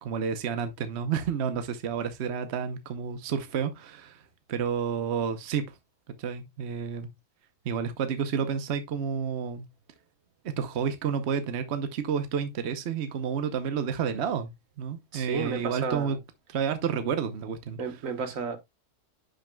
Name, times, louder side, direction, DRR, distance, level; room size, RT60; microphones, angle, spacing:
voice 1, 0.0-5.8 6.2-7.1 7.6-9.7 10.4-16.2 16.5-18.0, right 7 dB, 55° right, 1.1 m, -30 dB
voice 2, 15.1-16.2 17.8-18.6, right 5 dB, 80° right, 1.6 m, -32 dB
10.0 x 6.4 x 2.2 m
omnidirectional pair, 1.4 m